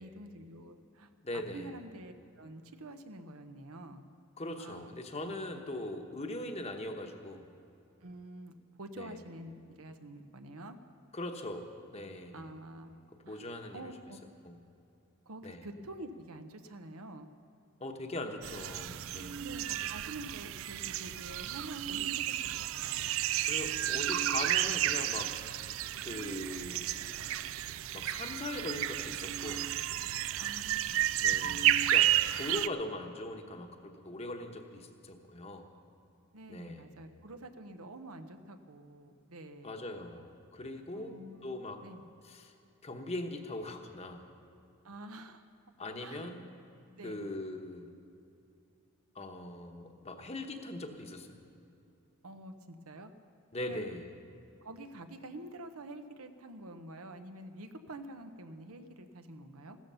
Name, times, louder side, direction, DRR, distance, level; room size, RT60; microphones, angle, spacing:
voice 1, 0.0-4.0 4.6-4.9 8.0-10.8 12.3-13.0 13.2-13.4 13.7-14.2 15.3-17.3 19.4-23.1 30.4-31.0 36.3-39.7 40.9-41.5 41.8-42.0 44.8-45.4 46.0-46.3 47.0-47.3 52.2-53.1 53.7-53.9 54.6-59.8, right 1 dB, 85° right, 8 dB, 1.0 m, -47 dB
voice 2, 1.2-1.7 4.4-7.5 9.0-9.2 11.1-12.5 13.3-13.9 14.4-14.6 15.4-15.6 17.8-19.4 23.5-25.3 26.0-27.0 27.9-29.7 31.2-35.7 36.5-36.9 39.6-41.1 41.4-41.8 42.2-42.5 42.8-44.3 45.8-46.4 47.0-47.9 49.1-51.3 53.5-54.1, left 1 dB, 30° left, 5 dB, 1.0 m, -41 dB
sound 1, 18.4-32.7, right 12 dB, 65° right, 0.4 m, -32 dB
16.0 x 13.5 x 5.6 m, 2.7 s
head